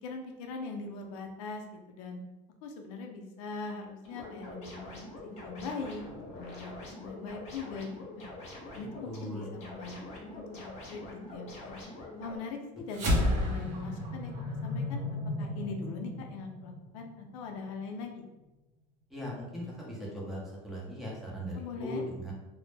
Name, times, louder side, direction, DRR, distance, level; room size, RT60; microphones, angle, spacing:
voice 1, 0.0-2.2 2.6-5.0 5.2-6.0 6.3-8.3 8.7-11.8 12.2-15.0 15.4-18.2 21.5-22.0, left 4 dB, 85° left, 3 dB, 0.5 m, -41 dB
sound 1, 4.0-12.4, left 2 dB, 40° left, 0.8 m, -45 dB
voice 2, 8.8-9.5 19.1-22.3, equal, ahead, -5 dB, 0.6 m, -39 dB
sound 2, 12.9-17.6, left 1 dB, 45° right, 0.6 m, -32 dB
2.0 x 2.0 x 3.2 m, 1.0 s
cardioid pair, 135°, 17 cm